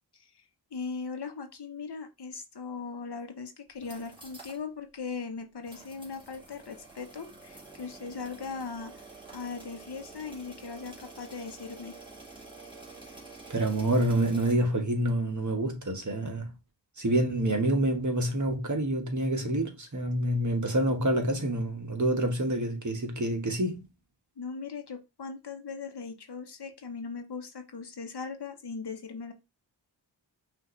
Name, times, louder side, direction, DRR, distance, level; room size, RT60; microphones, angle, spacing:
voice 1, 0.1-0.4 0.7-9.1 9.3-11.9 24.4-29.3, left 5 dB, 60° left, 1.0 m, -39 dB
sound 1, 3.7-4.6 4.9-5.0 5.6-14.5, right 3 dB, 10° right, 1.9 m, -48 dB
voice 2, 13.5-16.5 17.0-23.9, right 1 dB, 40° right, 1.3 m, -27 dB
5.7 x 2.7 x 3.1 m
cardioid pair, 50°, 44 cm